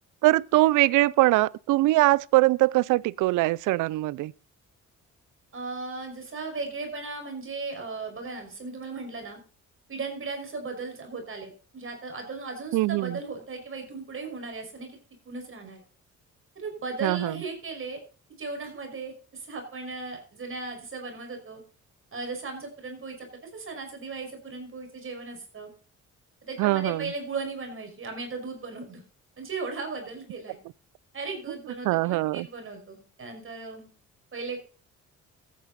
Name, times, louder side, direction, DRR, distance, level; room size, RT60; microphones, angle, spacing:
voice 1, 0.2-4.3 12.7-13.2 17.0-17.4 26.6-27.1 31.8-32.5, right 18 dB, 90° right, 0.5 m, -22 dB
voice 2, 5.5-9.4 9.9-15.0 15.3-15.8 16.6-18.0 18.4-21.6 22.1-25.7 26.4-29.0 29.4-30.6 31.1-33.9 34.3-34.6, right 4 dB, 45° right, 5.6 m, -37 dB
14.5 x 9.4 x 4.2 m
cardioid pair, 90°, 30 cm